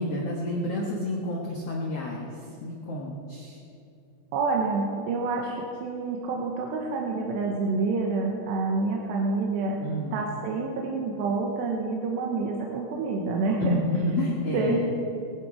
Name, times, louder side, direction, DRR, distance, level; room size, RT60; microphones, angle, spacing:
voice 1, 0.0-2.3 2.6-3.6 9.8-10.2 13.6-14.8, left 1 dB, 75° left, -2 dB, 1.4 m, -29 dB
voice 2, 4.3-9.8 10.1-13.8 14.5-14.8, right 3 dB, 80° right, 0 dB, 3.2 m, -28 dB
18.5 x 12.0 x 4.9 m, 2.6 s
omnidirectional pair, 5.0 m